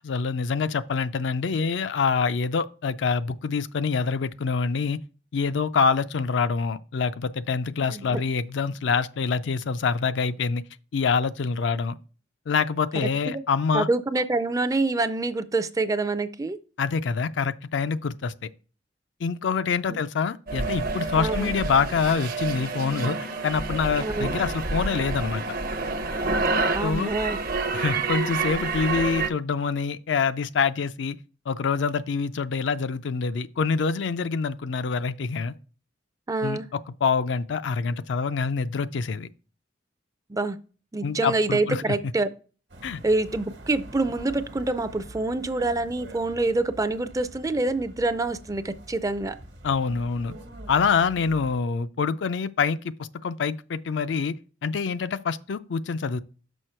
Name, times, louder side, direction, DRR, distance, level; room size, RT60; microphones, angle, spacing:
voice 1, 0.0-5.0 5.3-10.6 10.9-11.9 12.5-13.9 16.8-18.5 19.2-23.2 23.4-25.4 26.8-27.2 27.7-31.2 31.5-35.5 36.4-39.3 41.0-41.9 42.8-43.0 49.6-50.3 50.7-54.3 54.6-56.2, left 5 dB, 70° left, 0.4 m, -26 dB
voice 2, 7.8-8.2 13.0-13.4 13.7-16.6 19.9-20.0 21.2-21.5 24.0-24.3 26.7-27.4 36.3-36.7 40.3-40.6 40.9-42.3 43.0-49.4, right 2 dB, 20° right, 0.4 m, -26 dB
sound 1, 20.5-29.3, right 3 dB, 50° right, 0.7 m, -28 dB
sound 2, 42.7-51.6, right 1 dB, 65° right, 1.2 m, -45 dB
6.3 x 5.0 x 4.4 m
head